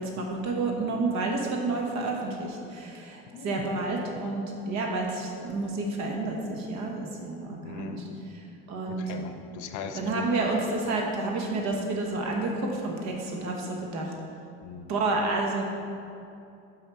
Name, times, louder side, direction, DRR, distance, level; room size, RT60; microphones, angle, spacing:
voice 1, 0.0-8.0 8.7-9.0 9.9-14.1 14.9-15.7, right 3 dB, 60° right, 1 dB, 1.2 m, -30 dB
voice 2, 3.3-3.7 7.6-8.0 8.9-10.5 14.6-14.9, left 6 dB, 65° left, 7 dB, 0.7 m, -40 dB
5.6 x 5.4 x 4.3 m, 2.6 s
supercardioid pair, 95°, 31 cm